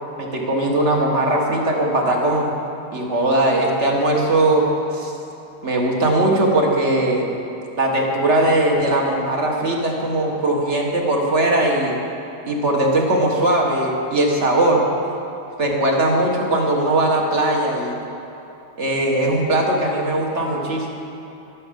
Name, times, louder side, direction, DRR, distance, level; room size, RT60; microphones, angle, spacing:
voice 1, 0.2-2.5 2.9-4.7 4.9-5.1 5.6-7.3 7.8-12.0 12.5-14.9 15.6-18.0 18.8-20.9, right 1 dB, 45° right, -1 dB, 1.8 m, -19 dB
12.5 x 12.0 x 5.2 m, 3.0 s
omnidirectional pair, 1.7 m